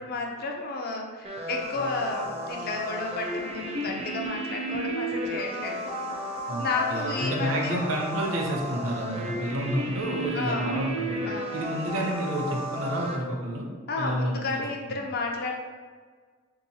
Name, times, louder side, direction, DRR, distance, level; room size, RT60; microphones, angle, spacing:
voice 1, 0.0-6.0 6.6-7.8 10.3-10.8 11.2-11.9 13.9-15.6, left 3 dB, 50° left, 1 dB, 0.5 m, -32 dB
sound 1, 1.2-13.2, right 1 dB, 30° right, 0.4 m, -33 dB
voice 2, 6.5-11.3 11.5-13.7 14.0-14.6, right 1 dB, 90° right, 0 dB, 0.6 m, -30 dB
3.6 x 2.9 x 2.7 m, 1.5 s
head